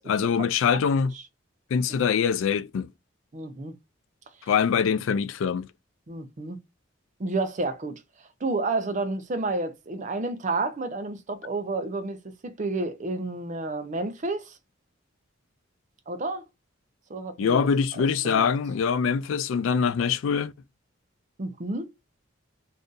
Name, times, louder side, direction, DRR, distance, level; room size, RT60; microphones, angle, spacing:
voice 1, 0.1-1.1 1.7-2.9 4.5-5.7 17.4-20.5, left 6 dB, 85° left, 0.3 m, -24 dB
voice 2, 3.3-3.7 4.4-4.5 6.1-6.6 7.2-8.0 8.4-12.2 12.4-14.6 16.1-16.4 17.1-17.6 18.2-18.5 21.4-21.9, right 2 dB, 40° right, 0.5 m, -30 dB
2.6 x 2.5 x 3.7 m
head